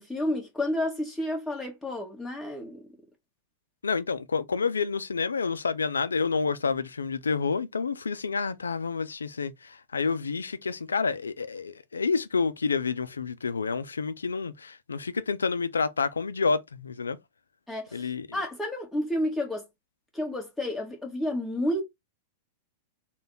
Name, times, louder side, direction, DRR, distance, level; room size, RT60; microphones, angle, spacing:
voice 1, 0.0-2.8 17.7-19.6 20.1-21.8, left 1 dB, 5° left, 1.6 m, -31 dB
voice 2, 3.8-17.2 17.9-18.4, left 5 dB, 85° left, 0.4 m, -29 dB
3.3 x 2.2 x 3.8 m
hypercardioid pair, 100°, 0 cm